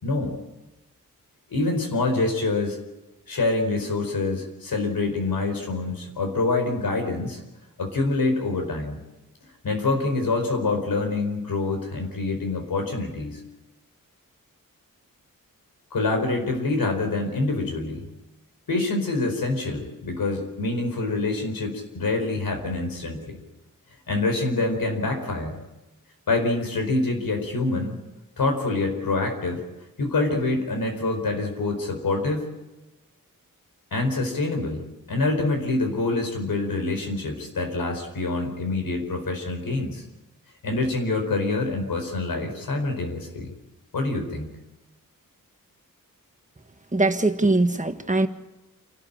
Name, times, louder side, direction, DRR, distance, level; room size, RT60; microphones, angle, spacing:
voice 1, 0.0-0.3 1.5-2.8 3.3-7.4 7.8-9.0 9.6-13.4 15.9-18.1 18.7-23.4 24.1-25.6 26.3-28.0 28.4-29.6 30.0-32.5 33.9-40.0 40.6-43.5 43.9-44.5, left 3 dB, 90° left, 4 dB, 4.7 m, -26 dB
voice 2, 46.9-48.3, right 2 dB, 20° right, 7 dB, 1.5 m, -21 dB
28.0 x 12.5 x 8.8 m, 1.0 s
wide cardioid pair, 75°, 34 cm